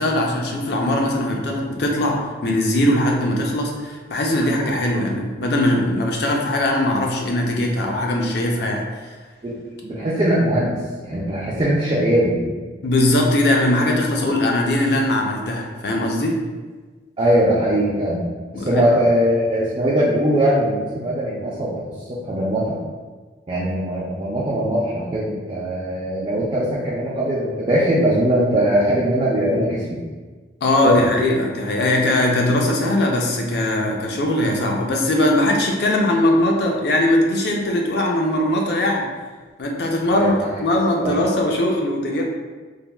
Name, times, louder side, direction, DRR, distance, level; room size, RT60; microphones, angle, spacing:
voice 1, 0.0-9.1 12.8-16.4 18.5-18.8 30.6-39.1 39.6-42.2, left 1 dB, 55° left, 0 dB, 0.4 m, -20 dB
voice 2, 9.8-10.8 11.0-12.4 17.2-18.2 18.5-21.7 22.1-22.8 23.5-30.0 30.8-31.0 40.1-40.5 41.0-41.2, equal, 30° right, -7 dB, 0.4 m, -20 dB
3.3 x 2.2 x 2.3 m, 1.4 s
head